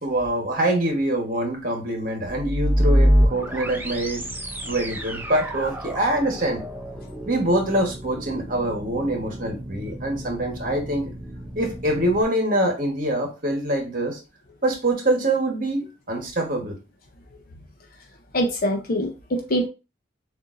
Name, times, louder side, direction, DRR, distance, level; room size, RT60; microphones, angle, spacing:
voice 1, 0.0-4.3 4.7-6.6 7.3-11.1 11.5-14.2 14.6-16.8, right 1 dB, 45° right, 1.2 m, -24 dB
sound 1, 2.2-12.2, equal, 10° right, 0.5 m, -26 dB
voice 2, 18.3-19.7, equal, 45° left, 0.6 m, -24 dB
6.8 x 2.6 x 2.6 m
head